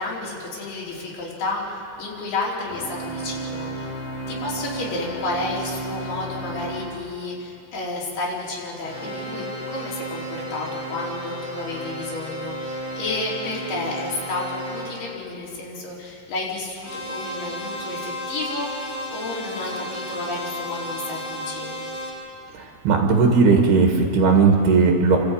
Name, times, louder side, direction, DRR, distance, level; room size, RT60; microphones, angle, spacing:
voice 1, 0.0-3.9 4.3-21.8, left 2 dB, 80° left, -5 dB, 5.9 m, -31 dB
sound 1, 2.7-6.9 8.8-14.9 16.8-22.1, right 1 dB, 45° left, 6.5 m, -33 dB
voice 2, 22.5-25.2, right 4 dB, 85° right, 2 dB, 3.9 m, -17 dB
29.0 x 13.5 x 9.0 m, 2.6 s
omnidirectional pair, 4.5 m